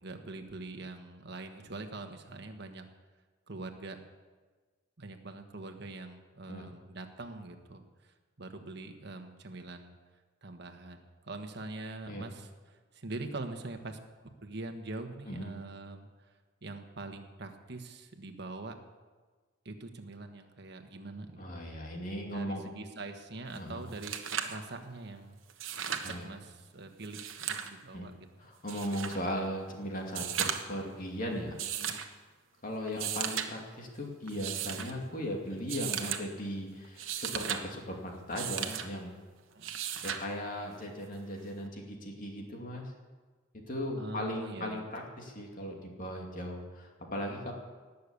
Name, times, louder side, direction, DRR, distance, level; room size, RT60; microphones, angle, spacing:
voice 1, 0.0-2.9 3.5-4.0 5.0-9.9 10.4-14.0 14.4-16.1 16.6-18.8 19.6-21.4 22.3-25.4 26.1-28.2 39.5-39.8 44.0-44.9, right 2 dB, 55° right, 5 dB, 1.4 m, -43 dB
voice 2, 15.2-15.6 21.4-22.6 23.5-23.8 26.0-26.4 27.9-28.1 28.4-32.0 32.6-39.1 40.0-42.9 43.7-47.5, equal, 45° left, 0 dB, 2.6 m, -38 dB
sound 1, 23.5-23.6 23.9-24.6 25.5-26.2 27.0-27.7 28.7-29.2 30.1-30.8 31.6-32.1 32.9-33.5 34.3-34.9 35.7-36.2 36.8-37.6 38.4-38.9 39.6-40.2 41.7-41.8, right 9 dB, 80° right, 1.2 m, -35 dB
19.0 x 6.9 x 8.3 m, 1.4 s
head